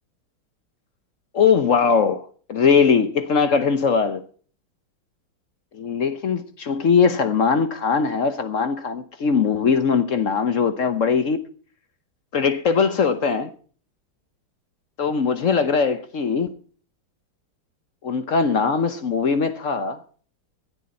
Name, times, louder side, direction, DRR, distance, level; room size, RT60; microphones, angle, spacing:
voice 1, 1.3-4.2 5.7-11.4 12.3-13.5 15.0-16.5 18.0-20.0, left 5 dB, 55° left, 0.9 m, -20 dB
16.5 x 10.5 x 4.3 m
omnidirectional pair, 2.4 m